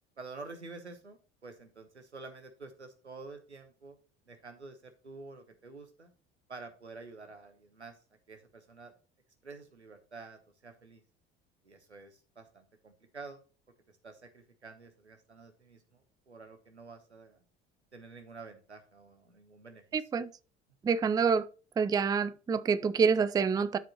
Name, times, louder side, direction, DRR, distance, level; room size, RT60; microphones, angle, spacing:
voice 1, 0.2-4.0 4.3-6.1 6.5-8.0 8.3-8.9 9.4-11.0 11.6-13.4 14.0-17.4 17.9-19.8, right 3 dB, 90° right, 1.1 m, -49 dB
voice 2, 19.9-20.3 20.8-21.5 21.8-23.8, right 5 dB, 10° right, 0.4 m, -27 dB
12.5 x 5.1 x 3.0 m
figure-of-eight pair, 60°, 33 cm